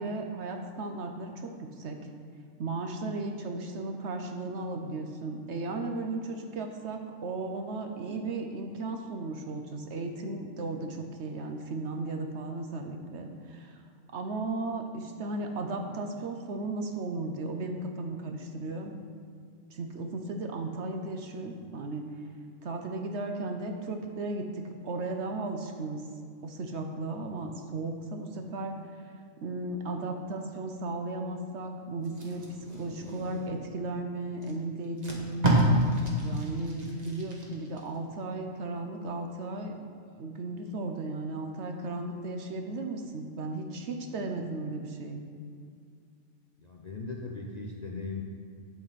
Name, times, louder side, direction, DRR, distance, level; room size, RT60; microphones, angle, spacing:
voice 1, 0.0-2.0 2.6-13.8 14.1-18.9 19.7-22.0 22.6-26.0 26.4-28.8 29.4-32.5 32.8-35.5 36.2-39.7 40.2-45.2, right 2 dB, 60° right, 4 dB, 1.0 m, -35 dB
Packing tape duct tape, 32.0-33.7 34.4-34.5 34.8-37.8 38.2-38.5, right 1 dB, 30° right, 1.3 m, -29 dB
voice 2, 46.6-48.2, left 3 dB, 45° left, 0 dB, 0.5 m, -38 dB
8.5 x 7.9 x 4.1 m, 2.2 s
omnidirectional pair, 1.4 m